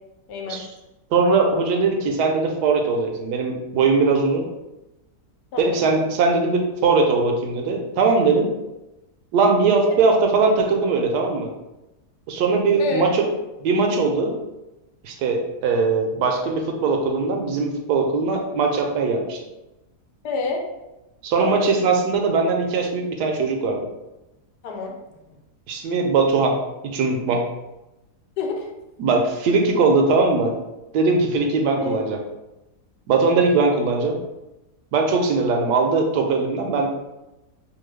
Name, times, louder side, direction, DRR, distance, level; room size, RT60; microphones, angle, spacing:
voice 1, 0.3-0.6 5.5-5.8 12.8-13.0 20.2-20.6 21.4-21.7 24.6-25.4 28.4-28.7 31.8-32.0, left 3 dB, 80° left, 1 dB, 1.2 m, -28 dB
voice 2, 1.1-4.4 5.6-8.5 9.3-11.5 12.3-13.3 13.6-14.3 15.0-19.4 21.2-23.8 25.7-26.6 26.8-27.5 29.0-30.5 30.9-32.2 33.1-34.2 34.9-36.9, right 4 dB, 80° right, 2 dB, 1.1 m, -20 dB
3.0 x 2.2 x 3.2 m, 0.97 s
omnidirectional pair, 1.7 m